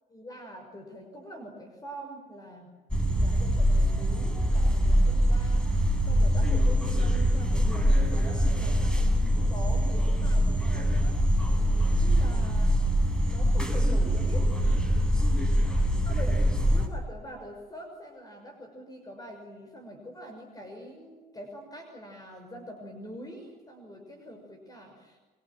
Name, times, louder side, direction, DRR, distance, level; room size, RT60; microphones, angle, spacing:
voice 1, 0.1-2.7 3.1-11.6 12.0-12.8 13.3-14.5 16.0-25.2, equal, 20° left, 4 dB, 6.3 m, -44 dB
sound 1, 2.9-16.9, equal, 5° left, 6.2 m, -24 dB
28.0 x 24.5 x 7.7 m, 1.3 s
cardioid pair, 110°, 17 cm